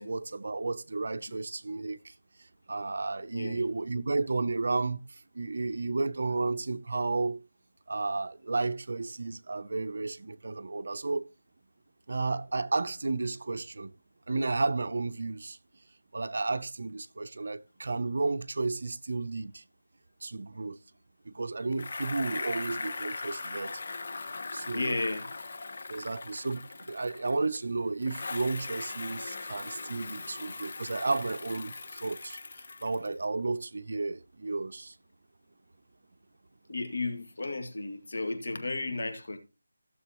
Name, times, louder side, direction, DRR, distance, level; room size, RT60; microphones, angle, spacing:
voice 1, 0.0-2.1 2.7-7.4 7.9-11.2 12.1-13.9 14.3-15.6 16.1-19.6 20.2-20.8 21.3-23.8 24.5-24.9 25.9-32.4 32.8-35.0, right 3 dB, 60° right, 0.6 m, -32 dB
voice 2, 3.3-3.6 24.7-25.3 36.7-39.4, left 2 dB, 65° left, 2.1 m, -34 dB
Bicycle, 21.7-27.6 28.0-33.2, left 3 dB, 45° left, 0.9 m, -40 dB
15.5 x 6.9 x 3.0 m
figure-of-eight pair, 170°, 0 cm